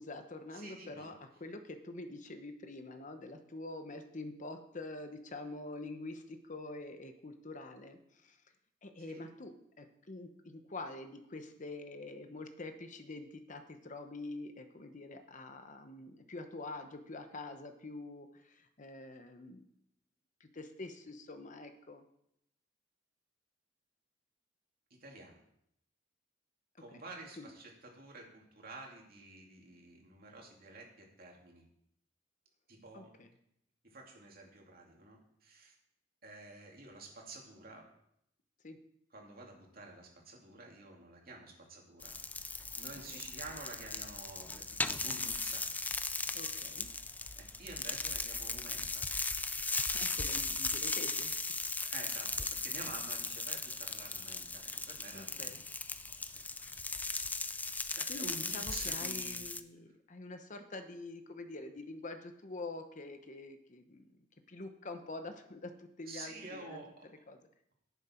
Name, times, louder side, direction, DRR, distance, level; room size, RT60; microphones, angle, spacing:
voice 1, 0.0-8.4 8.8-19.7 20.4-22.0 26.9-27.0 27.4-27.5 32.9-33.3 38.6-38.8 43.1-43.2 46.3-46.9 49.8-51.5 55.1-55.6 58.1-64.1 64.5-66.8 67.1-67.4, left 2 dB, 40° left, 7 dB, 0.9 m, -46 dB
voice 2, 0.5-1.1 9.1-9.2 25.0-25.4 26.8-31.6 32.7-33.1 33.8-35.7 36.2-37.9 39.1-42.1 42.7-45.6 46.8-46.9 47.4-49.0 51.9-55.5 56.6-57.2 57.9-59.6 66.1-67.0, right 3 dB, 50° right, 0 dB, 2.7 m, -50 dB
sound 1, 42.0-59.6, left 3 dB, 10° left, 0.4 m, -37 dB
11.0 x 9.9 x 4.4 m, 0.75 s
head